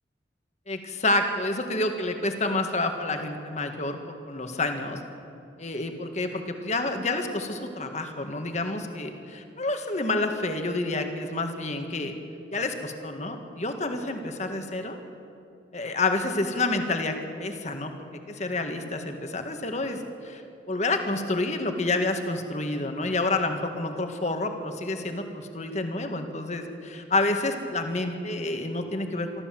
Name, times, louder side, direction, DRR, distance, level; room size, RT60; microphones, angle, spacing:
voice 1, 0.7-4.0 4.3-5.0 5.6-12.1 12.5-15.0 15.7-17.1 17.4-17.9 18.3-20.0 20.2-20.4 20.7-29.4, left 2 dB, 35° left, 5 dB, 1.8 m, -29 dB
24.0 x 14.0 x 7.7 m, 2.8 s
head